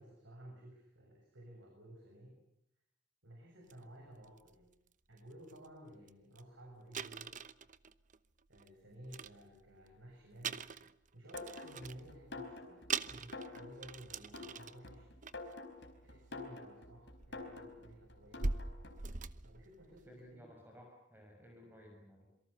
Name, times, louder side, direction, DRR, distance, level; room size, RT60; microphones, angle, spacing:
voice 1, 0.0-2.4 3.2-4.7 5.1-7.3 8.5-10.6 11.1-15.1 16.0-18.6 19.4-20.5, right 1 dB, 90° right, 1 dB, 6.9 m, -55 dB
sound 1, 3.7-3.8 4.2-4.5 5.2-5.3 5.5-5.7 6.1-6.2 6.4-6.5 6.9-8.7 9.0-9.9 10.4-12.1 12.6-12.7 12.9-14.9 15.2-15.5 16.6-16.7 17.2-20.2, right 4 dB, 45° right, 0.9 m, -42 dB
sound 2, 11.3-19.1, left 3 dB, 65° left, 4.6 m, -49 dB
voice 2, 20.1-22.3, equal, 10° right, 1 dB, 6.1 m, -57 dB
27.0 x 24.0 x 7.0 m, 0.79 s
head